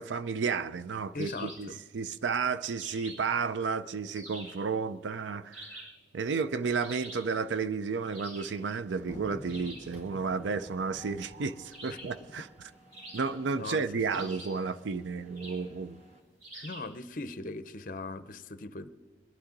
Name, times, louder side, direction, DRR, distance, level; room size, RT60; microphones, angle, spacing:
voice 1, 0.0-1.7 1.9-5.8 6.1-12.5 13.1-16.0 16.5-16.7, right 5 dB, 85° right, 0.5 m, -32 dB
voice 2, 1.1-1.8 11.9-12.0 13.5-13.8 14.1-14.3 16.6-18.9, left 3 dB, 45° left, 0.6 m, -39 dB
sound 1, 1.2-1.7 2.8-3.4 4.1-4.7 5.5-6.0 6.8-7.3 8.1-8.6 9.5-9.9 11.7-12.2 12.9-13.6 14.1-14.7 15.3-15.7 16.4-17.0, right 1 dB, 55° right, 5.4 m, -47 dB
Mechanisms, 6.6-7.2 7.6-16.2, right 1 dB, 40° right, 1.9 m, -57 dB
sound 2, 9.0-12.7, left 1 dB, 25° left, 1.7 m, -49 dB
22.0 x 11.5 x 3.9 m
head